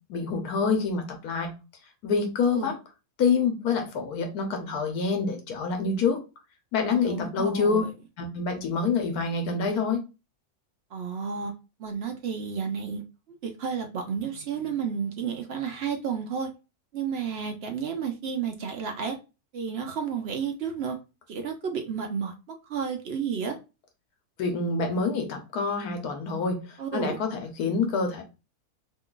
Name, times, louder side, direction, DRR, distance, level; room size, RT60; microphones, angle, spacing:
voice 1, 0.1-1.5 2.0-2.7 3.2-6.2 6.7-7.8 8.2-10.0 24.4-28.2, left 4 dB, 85° left, 4 dB, 1.2 m, -26 dB
voice 2, 7.0-7.9 10.9-11.5 11.8-13.0 13.4-16.5 16.9-19.2 19.5-21.0 21.3-23.6 26.8-27.2, right 6 dB, 65° right, 5 dB, 0.6 m, -31 dB
3.0 x 2.3 x 3.7 m, 0.29 s
omnidirectional pair, 1.6 m